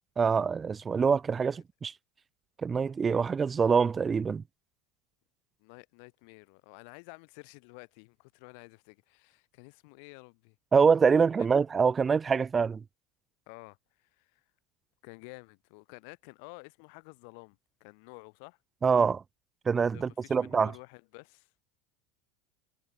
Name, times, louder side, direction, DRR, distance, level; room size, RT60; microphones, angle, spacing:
voice 1, 0.2-1.9 2.6-4.4 10.7-12.8 18.8-19.2 19.7-20.7, right 5 dB, 25° right, 0.7 m, -25 dB
voice 2, 5.6-10.6 11.4-11.6 13.5-14.4 15.0-18.6 19.9-21.5, left 37 dB, 70° left, 3.5 m, -51 dB
hypercardioid pair, 100°, 0 cm